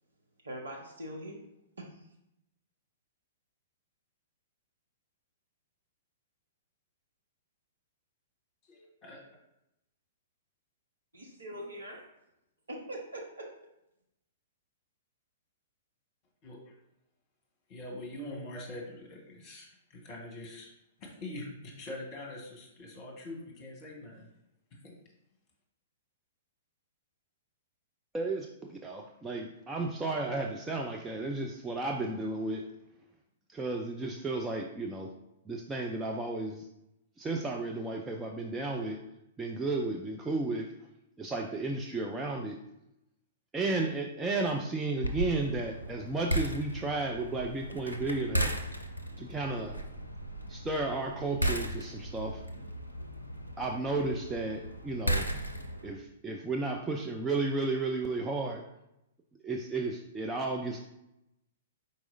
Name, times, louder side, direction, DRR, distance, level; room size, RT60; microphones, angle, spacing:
voice 1, 0.4-1.4 1.8-2.1 11.1-12.0 12.7-13.6, right 1 dB, 70° right, 0 dB, 0.8 m, -42 dB
voice 2, 8.7-9.2 16.4-16.7 17.7-20.7 21.0-24.3 24.8-24.9, left 1 dB, 30° left, 0 dB, 1.3 m, -44 dB
voice 3, 28.1-32.6 33.5-35.1 35.5-36.6 37.2-39.0 39.4-40.7 41.2-42.6 43.5-48.5 49.2-49.8 50.5-52.4 53.6-55.3 55.8-58.6 59.4-60.8, right 3 dB, 10° right, 1 dB, 0.4 m, -33 dB
sound 1, 45.0-55.9, right 1 dB, 90° left, 0.5 m, -36 dB
4.7 x 4.2 x 2.6 m, 0.84 s
figure-of-eight pair, 110°, 0 cm